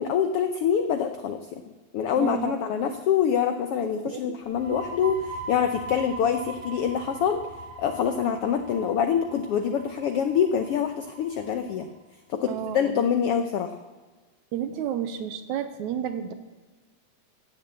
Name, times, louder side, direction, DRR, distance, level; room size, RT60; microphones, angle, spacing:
voice 1, 0.0-1.6 1.9-7.4 7.8-11.9 12.3-13.8, left 8 dB, 85° left, 8 dB, 1.3 m, -25 dB
voice 2, 2.2-2.6 4.0-4.4 12.5-13.0 14.5-16.3, right 9 dB, 75° right, 9 dB, 2.1 m, -31 dB
sound 1, 4.4-11.9, right 2 dB, 50° right, 3.0 m, -41 dB
16.0 x 7.6 x 8.2 m, 1.3 s
omnidirectional pair, 3.6 m